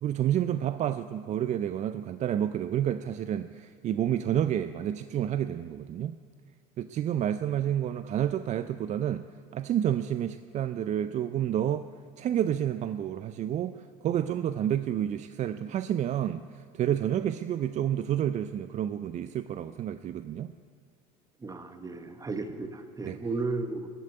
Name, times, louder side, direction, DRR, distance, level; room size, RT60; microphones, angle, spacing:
voice 1, 0.0-6.2 6.8-9.2 9.5-11.9 12.2-20.5 23.0-23.2, right 10 dB, 40° right, 12 dB, 0.5 m, -29 dB
voice 2, 21.4-23.9, right 3 dB, 20° right, 8 dB, 1.3 m, -34 dB
13.5 x 8.5 x 9.2 m, 2.1 s
hypercardioid pair, 85°, 18 cm